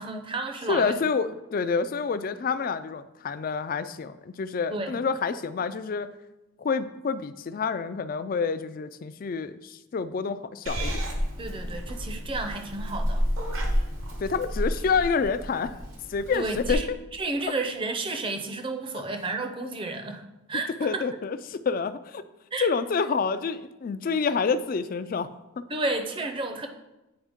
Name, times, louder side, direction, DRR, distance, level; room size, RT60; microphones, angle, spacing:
voice 1, 0.0-1.0 4.7-4.9 11.4-13.3 16.3-20.2 20.5-21.0 22.5-22.7 25.7-26.7, right 2 dB, 25° right, 6 dB, 0.6 m, -31 dB
voice 2, 0.7-6.1 6.6-11.0 14.2-15.8 16.1-17.0 18.9-19.0 20.8-22.2 22.6-25.3 25.6-25.7, left 5 dB, 45° left, 13 dB, 0.3 m, -28 dB
Purr / Meow, 10.7-16.7, equal, 80° right, 1.2 m, -30 dB
8.7 x 4.4 x 3.5 m, 0.99 s
head